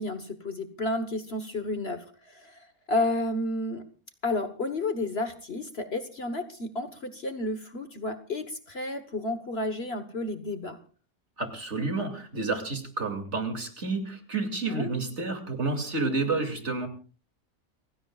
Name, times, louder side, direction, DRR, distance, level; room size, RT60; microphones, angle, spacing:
voice 1, 0.0-3.8 4.2-10.8 14.7-14.9, left 2 dB, 45° left, 8 dB, 1.5 m, -31 dB
voice 2, 11.4-16.9, right 3 dB, 55° right, 5 dB, 2.9 m, -30 dB
29.5 x 16.0 x 2.4 m, 0.37 s
omnidirectional pair, 1.5 m